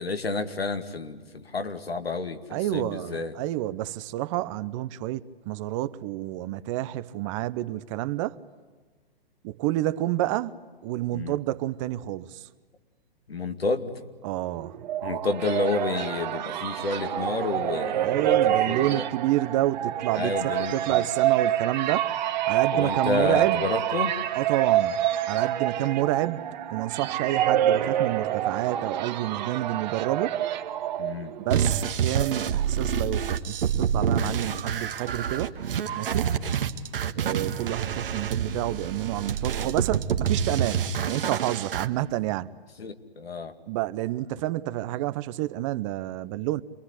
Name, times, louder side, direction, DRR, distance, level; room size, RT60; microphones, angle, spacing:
voice 1, 0.0-2.4 2.7-3.3 11.1-11.4 13.3-14.0 15.0-19.0 20.1-21.1 22.7-24.1 31.0-31.3 36.4-36.6 42.8-43.5, left 3 dB, 85° left, 2.4 m, -30 dB
voice 2, 2.5-8.4 9.4-10.5 10.8-12.5 14.2-14.8 18.0-20.4 20.7-22.1 22.5-23.6 24.3-26.4 26.7-30.4 31.4-35.5 36.0-36.3 37.2-42.5 43.7-46.6, right 15 dB, 30° right, 0.8 m, -29 dB
sound 1, 14.6-31.6, right 11 dB, 45° right, 1.5 m, -27 dB
sound 2, 31.5-41.9, right 7 dB, 65° right, 1.7 m, -27 dB
27.5 x 21.0 x 9.9 m
figure-of-eight pair, 125°, 30 cm